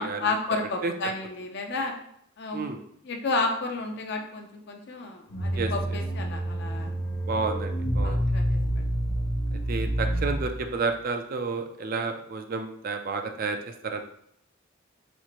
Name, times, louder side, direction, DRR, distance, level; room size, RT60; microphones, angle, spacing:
voice 1, 0.0-1.9 2.4-2.7 3.0-6.9 8.0-8.9, left 3 dB, 55° left, 4 dB, 0.5 m, -31 dB
sound 1, 5.3-10.7, right 1 dB, 75° left, 0.8 m, -28 dB
voice 2, 7.3-8.3 9.7-13.6 13.8-14.0, right 4 dB, 45° right, 6 dB, 0.3 m, -30 dB
4.4 x 2.4 x 2.9 m, 0.70 s
head